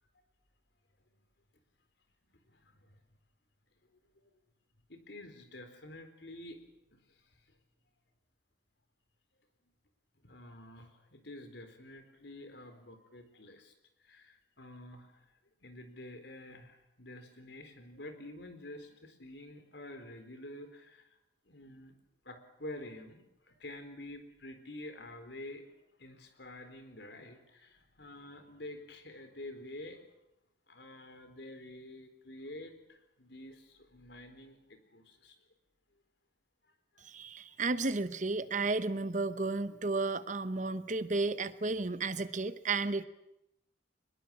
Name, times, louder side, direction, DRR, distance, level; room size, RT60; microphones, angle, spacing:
voice 1, 2.3-3.0 4.2-4.3 4.9-6.6 6.9-7.4 10.2-13.7 14.0-15.3 15.6-21.2 21.5-22.0 22.2-30.0 30.7-35.4 36.9-37.1 37.5-37.6, left 1 dB, 65° left, 8 dB, 4.1 m, -49 dB
voice 2, 37.0-43.1, right 3 dB, 40° right, 13 dB, 1.0 m, -33 dB
23.5 x 21.5 x 8.8 m, 0.85 s
head